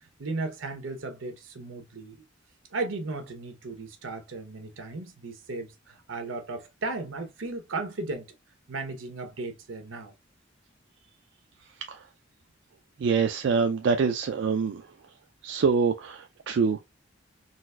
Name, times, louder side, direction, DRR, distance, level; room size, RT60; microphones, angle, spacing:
voice 1, 0.2-2.2 2.7-8.3 8.7-10.1, right 3 dB, 85° right, 0.8 m, -35 dB
voice 2, 13.0-14.8 15.4-16.8, right 5 dB, 65° right, 0.3 m, -25 dB
3.9 x 2.4 x 2.2 m
head